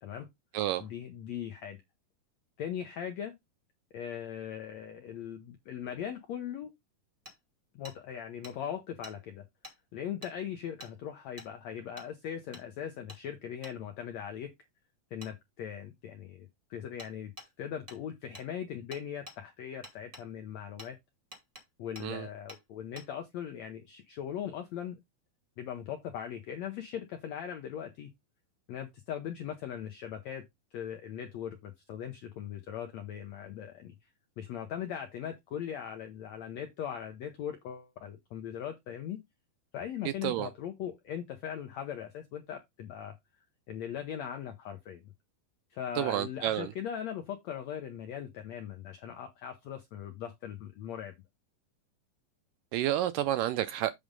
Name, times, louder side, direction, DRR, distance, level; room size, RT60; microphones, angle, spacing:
voice 1, 0.8-1.8 2.6-3.3 3.9-6.7 7.7-9.4 9.9-14.5 15.1-17.3 17.6-21.0 21.8-25.0 25.6-28.1 28.7-30.4 30.7-33.9 34.4-39.2 39.7-43.1 43.7-45.1 45.7-51.1, left 9 dB, 80° left, 1.6 m, -39 dB
Hammer, 7.3-7.4 7.8-8.0 8.4-8.5 9.0-9.2 9.6-9.8 10.2-10.3 10.8-10.9 11.4-11.5 12.0-12.1 12.5-12.7 13.1-13.2 13.6-13.8 15.2-15.3 17.0-17.1 17.4-17.5 17.9-18.0 18.3-18.5 18.9-19.4 19.8-20.3 20.8-20.9 21.3-21.6 22.0-22.1 22.5-22.6 23.0-23.1, equal, 40° right, 0.4 m, -48 dB
voice 2, 46.0-46.7 52.7-53.9, right 13 dB, 80° right, 2.0 m, -30 dB
8.3 x 3.6 x 5.2 m
omnidirectional pair, 4.2 m